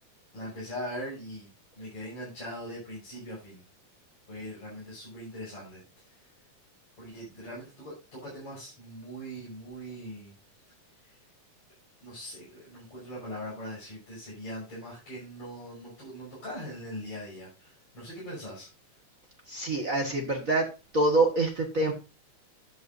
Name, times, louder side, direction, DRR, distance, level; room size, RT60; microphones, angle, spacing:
voice 1, 0.3-3.6 4.3-6.2 7.0-10.3 10.9-11.2 12.0-18.7, equal, 45° left, -7 dB, 6.8 m, -41 dB
voice 2, 19.5-20.7 20.9-21.9, right 2 dB, 50° right, 2 dB, 1.0 m, -25 dB
12.0 x 9.3 x 2.6 m, 0.29 s
omnidirectional pair, 3.5 m